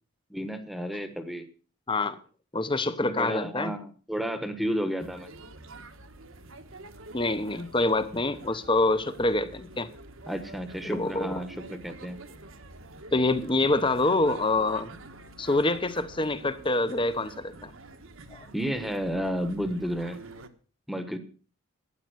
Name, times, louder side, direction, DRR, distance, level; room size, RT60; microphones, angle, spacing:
voice 1, 0.3-1.5 3.0-5.3 10.3-12.2 18.5-20.2 20.9-21.2, equal, ahead, 9 dB, 1.2 m, -32 dB
voice 2, 1.9-2.2 2.5-3.7 7.1-9.9 10.8-11.4 13.1-14.9 15.4-17.7 18.3-18.5, left 2 dB, 25° left, 13 dB, 0.9 m, -26 dB
sound 1, 5.0-20.5, right 2 dB, 65° right, 1.3 m, -47 dB
12.5 x 9.7 x 6.4 m, 0.39 s
head